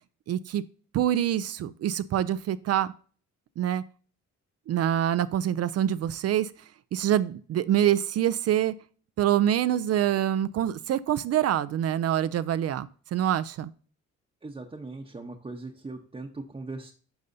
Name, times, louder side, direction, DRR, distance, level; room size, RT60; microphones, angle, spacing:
voice 1, 0.3-0.6 0.9-2.9 3.6-3.8 4.7-6.5 6.9-8.7 9.2-13.7, right 11 dB, 55° right, 14 dB, 0.4 m, -25 dB
voice 2, 14.4-16.9, right 3 dB, 20° right, 1 dB, 0.8 m, -39 dB
10.5 x 5.3 x 2.7 m, 0.41 s
cardioid pair, 90°, 30 cm